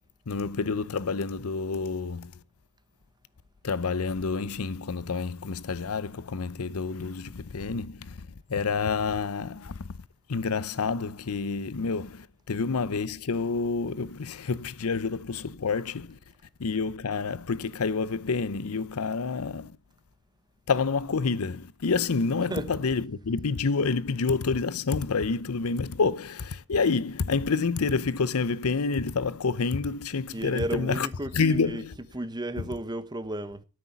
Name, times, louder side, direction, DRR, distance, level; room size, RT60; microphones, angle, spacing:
voice 1, 0.3-2.3 3.6-9.9 10.3-16.2 16.6-19.8 20.7-31.1 31.3-31.9, left 4 dB, 80° left, 0.7 m, -28 dB
voice 2, 30.3-31.8 32.1-33.6, right 1 dB, 20° right, 1.1 m, -33 dB
13.0 x 6.6 x 7.1 m
head